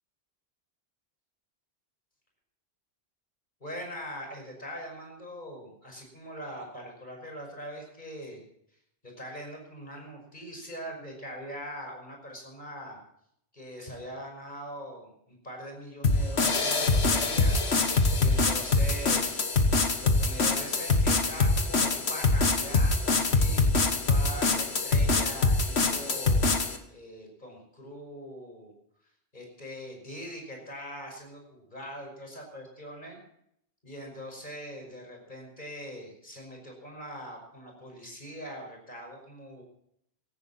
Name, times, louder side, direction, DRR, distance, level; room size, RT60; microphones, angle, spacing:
voice 1, 3.6-8.4 9.0-13.0 13.5-17.6 18.2-19.4 20.0-26.6 26.9-28.7 29.3-33.2 33.8-39.6, equal, 45° left, 1 dB, 5.7 m, -42 dB
sound 1, 16.0-26.8, left 3 dB, 80° left, 1.8 m, -24 dB
17.5 x 15.0 x 4.3 m, 0.72 s
omnidirectional pair, 1.1 m